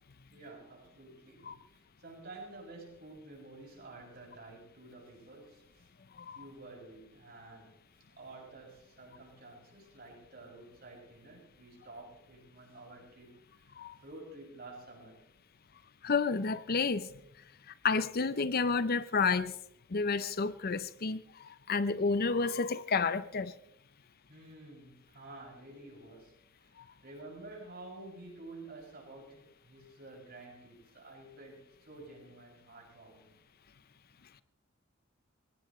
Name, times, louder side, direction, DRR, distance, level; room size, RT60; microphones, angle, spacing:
voice 1, 0.3-5.9 6.3-7.8 8.2-15.2 24.3-33.4, right 2 dB, 50° right, 7.0 m, -51 dB
voice 2, 16.0-17.1 17.8-19.5 19.9-23.5, left 4 dB, 50° left, 0.6 m, -30 dB
22.5 x 17.5 x 3.2 m
head